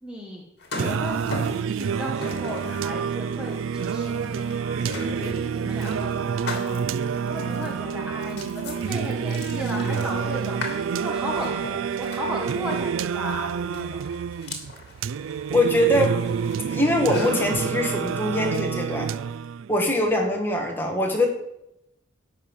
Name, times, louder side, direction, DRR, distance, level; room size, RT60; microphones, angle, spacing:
voice 1, 0.0-0.4 0.8-1.4 1.6-4.5 5.1-11.6 12.0-14.0, equal, 5° right, -1 dB, 1.5 m, -35 dB
sound 1, 0.6-17.8, left 2 dB, 55° left, 2.8 m, -38 dB
Singing, 0.8-19.8, right 7 dB, 85° right, 0.4 m, -28 dB
voice 2, 15.5-16.2 16.7-19.1 19.7-21.3, left 1 dB, 10° left, 1 dB, 1.9 m, -22 dB
12.5 x 5.7 x 9.0 m, 0.84 s
head